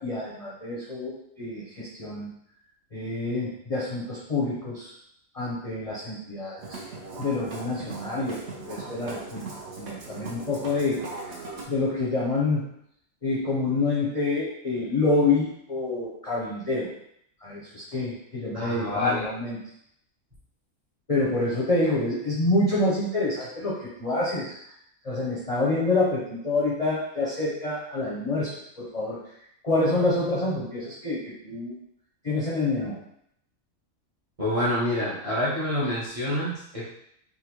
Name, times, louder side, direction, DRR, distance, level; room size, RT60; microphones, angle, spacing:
voice 1, 0.0-2.3 2.9-4.9 5.3-6.8 7.2-9.5 9.8-11.1 11.7-12.6 13.2-16.9 17.4-19.6 21.1-24.6 25.0-28.5 28.8-29.3 29.6-31.8 32.2-33.0, left 2 dB, 40° left, -7 dB, 0.5 m, -27 dB
Musical instrument, 6.6-11.6, right 3 dB, 60° right, 1.0 m, -39 dB
voice 2, 18.5-19.2 34.4-36.9, left 1 dB, 30° right, -7 dB, 0.8 m, -27 dB
3.6 x 2.3 x 3.0 m, 0.72 s
omnidirectional pair, 1.4 m